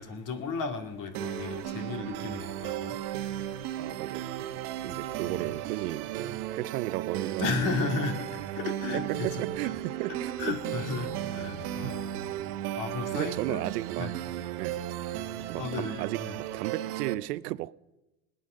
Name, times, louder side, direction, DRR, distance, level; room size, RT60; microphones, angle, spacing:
voice 1, 0.0-4.2 5.2-5.5 7.4-9.4 10.1-12.3 12.7-14.1 15.6-16.4, left 4 dB, 40° left, 2.4 m, -35 dB
sound 1, 1.1-17.1, right 12 dB, 75° right, 1.1 m, -35 dB
voice 2, 3.8-7.5 8.9-10.6 11.8-12.0 13.1-14.1 14.6-14.8 15.5-17.7, right 17 dB, 90° right, 0.6 m, -35 dB
20.0 x 9.4 x 6.3 m
supercardioid pair, 115°, 46 cm